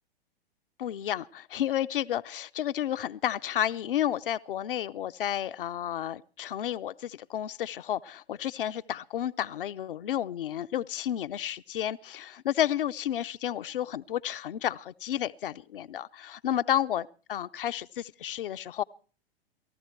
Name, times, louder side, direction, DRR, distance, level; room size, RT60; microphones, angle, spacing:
voice 1, 0.8-18.8, left 11 dB, 60° left, 0.7 m, -31 dB
18.5 x 14.5 x 4.5 m
figure-of-eight pair, 105°, 31 cm